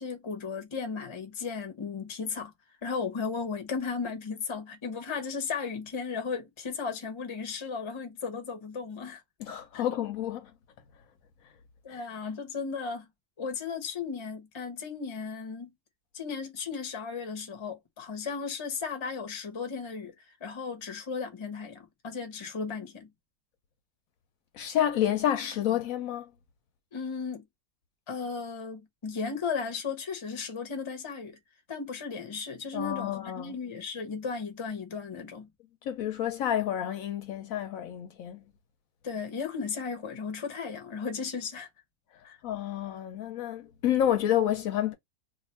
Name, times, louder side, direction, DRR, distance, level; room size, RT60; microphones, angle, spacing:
voice 1, 0.0-2.5 2.8-9.2 9.7-9.8 11.8-13.1 13.4-15.7 16.1-23.1 26.9-27.4 28.1-31.4 31.7-35.5 39.0-41.7 42.2-42.4, left 5 dB, 30° left, 0.6 m, -35 dB
voice 2, 9.4-10.5 11.9-12.0 24.5-26.3 32.7-33.5 35.8-38.4 42.1-44.9, left 11 dB, 70° left, 0.9 m, -29 dB
2.5 x 2.5 x 4.1 m
omnidirectional pair, 1.6 m